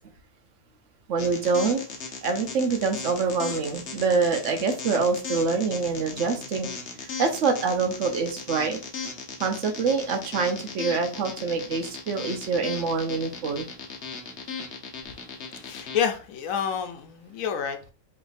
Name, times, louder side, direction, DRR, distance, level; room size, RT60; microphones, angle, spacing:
voice 1, 1.1-1.8 2.2-6.7 7.0-8.8 9.4-13.7, right 4 dB, 70° right, 1.0 m, -25 dB
sound 1, 1.2-16.0, left 5 dB, 55° left, 1.0 m, -37 dB
voice 2, 15.6-17.8, left 8 dB, 80° left, 1.1 m, -28 dB
4.8 x 3.2 x 2.6 m
omnidirectional pair, 1.4 m